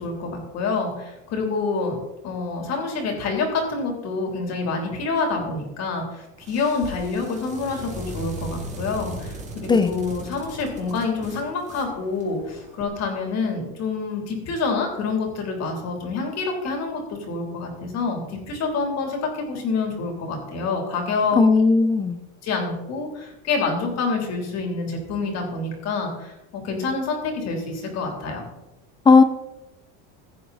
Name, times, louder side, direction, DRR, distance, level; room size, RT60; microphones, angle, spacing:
voice 1, 0.0-2.0 2.2-21.4 22.4-28.4, left 4 dB, 40° left, 2 dB, 3.4 m, -27 dB
sound 1, 6.4-12.8, right 2 dB, 15° right, 2.1 m, -38 dB
voice 2, 21.4-22.2 29.1-29.2, left 4 dB, 10° left, 10 dB, 0.4 m, -15 dB
15.5 x 9.0 x 4.1 m, 0.93 s
cardioid pair, 160°, 40 cm